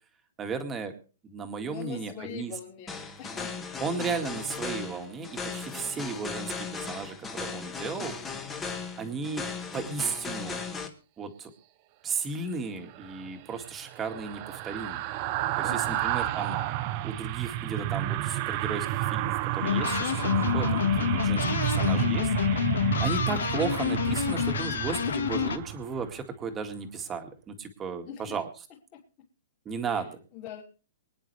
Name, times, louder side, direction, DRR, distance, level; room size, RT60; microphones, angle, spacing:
voice 1, 0.4-0.9 1.2-2.5 3.8-8.1 9.0-9.5 9.7-10.6 11.2-11.5 12.0-15.0 15.6-16.6 17.0-22.3 23.0-28.5 29.7-30.1, right 5 dB, 15° right, 6 dB, 2.0 m, -34 dB
voice 2, 1.7-3.5 15.6-16.1 28.0-28.4 28.9-29.0 29.8-30.6, left 10 dB, 25° left, -7 dB, 3.3 m, -43 dB
sound 1, 2.9-10.9, left 5 dB, 10° left, 1.7 m, -37 dB
sound 2, 12.9-26.2 26.6-26.8, right 14 dB, 30° right, 0.8 m, -31 dB
sound 3, 19.6-25.6, left 8 dB, 90° left, 1.6 m, -27 dB
24.5 x 9.8 x 3.4 m, 0.37 s
hypercardioid pair, 165°, 0 cm